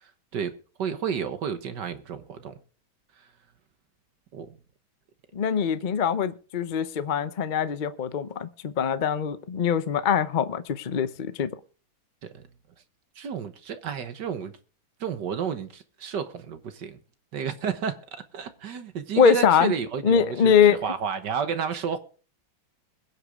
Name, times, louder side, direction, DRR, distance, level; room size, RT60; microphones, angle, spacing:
voice 1, 0.0-0.5 0.8-2.6 4.3-4.5 12.2-12.5 13.2-14.6 15.0-17.0 17.3-22.0, right 7 dB, 60° right, 1.7 m, -31 dB
voice 2, 5.3-11.5 19.2-19.7 20.0-20.8, left 7 dB, 85° left, 0.4 m, -23 dB
22.0 x 8.2 x 3.6 m
omnidirectional pair, 2.2 m